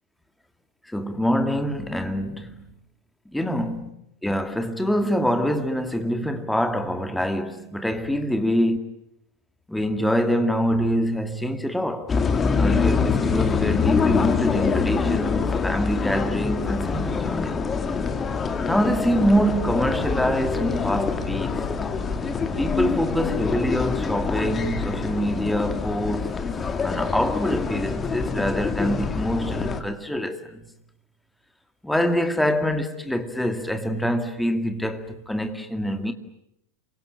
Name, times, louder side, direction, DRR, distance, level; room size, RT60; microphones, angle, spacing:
voice 1, 0.8-2.7 3.3-3.9 4.2-8.8 9.7-12.2 12.5-17.6 18.6-21.7 22.6-26.4 26.8-30.7 31.8-36.1, equal, 5° left, 2.2 m, -25 dB
sound 1, 12.1-29.8, left 5 dB, 20° left, 2.1 m, -25 dB
sound 2, 19.2-26.0, right 3 dB, 85° right, 1.3 m, -41 dB
27.0 x 24.5 x 8.9 m
figure-of-eight pair, 90°, 0 cm